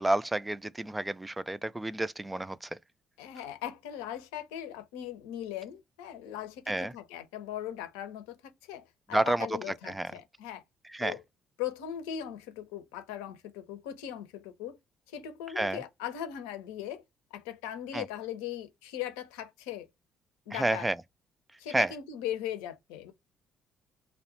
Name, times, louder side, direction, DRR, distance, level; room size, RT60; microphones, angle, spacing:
voice 1, 0.0-2.7 6.7-6.9 9.1-9.5 9.9-10.1 10.9-11.1 15.6-15.8 17.9-18.0 20.5-20.9 21.7-21.9, right 2 dB, 15° right, 0.3 m, -30 dB
voice 2, 3.2-10.6 11.0-11.2 11.6-14.8 15.1-17.0 17.3-19.9 20.5-20.9 21.6-23.1, left 10 dB, 85° left, 0.6 m, -39 dB
2.3 x 2.1 x 3.0 m
hypercardioid pair, 55°, 0 cm